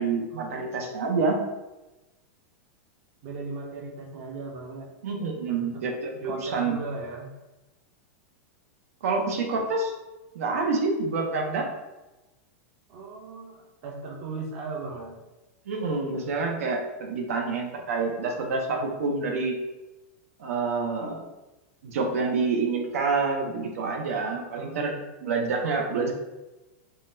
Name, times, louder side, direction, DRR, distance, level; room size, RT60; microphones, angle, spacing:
voice 1, 0.0-1.4 5.0-6.8 9.0-9.9 10.3-11.7 15.7-19.6 20.4-21.2 21.8-24.9 25.2-26.1, right 4 dB, 90° right, 2 dB, 0.7 m, -27 dB
voice 2, 3.2-4.9 5.5-5.9 6.2-7.3 12.9-15.2 24.6-25.0 25.6-26.1, right 3 dB, 30° right, -1 dB, 0.5 m, -38 dB
3.7 x 2.2 x 2.6 m, 1.0 s
supercardioid pair, 175°, 8 cm